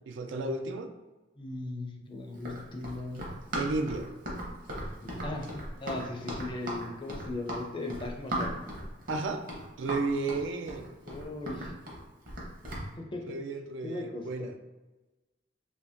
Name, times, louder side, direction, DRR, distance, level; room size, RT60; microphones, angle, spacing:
voice 1, 0.1-0.9 3.5-4.1 9.1-9.4 9.8-10.9 13.3-14.5, right 3 dB, 85° right, 5 dB, 0.4 m, -33 dB
voice 2, 1.4-3.3 5.0-5.5 5.8-8.5 11.1-11.7 13.0-13.4 13.8-14.2, left 2 dB, 25° left, 1 dB, 0.4 m, -38 dB
Run, 2.4-12.9, right 1 dB, 50° right, 0.8 m, -37 dB
2.9 x 2.7 x 3.4 m, 1.1 s
head